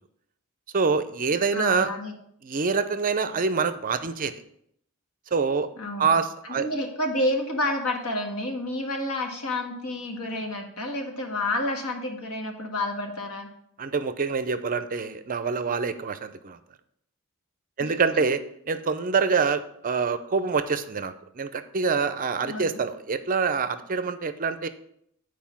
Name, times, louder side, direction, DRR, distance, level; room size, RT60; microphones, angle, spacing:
voice 1, 0.7-1.9 2.4-4.3 5.3-5.7 6.0-6.7 13.8-16.6 17.8-24.7, right 5 dB, 40° right, 11 dB, 0.5 m, -26 dB
voice 2, 1.5-2.1 5.8-6.1 6.6-13.5 17.8-17.9 22.4-22.8, left 1 dB, 75° left, 3 dB, 1.6 m, -29 dB
9.4 x 4.7 x 5.8 m, 0.72 s
head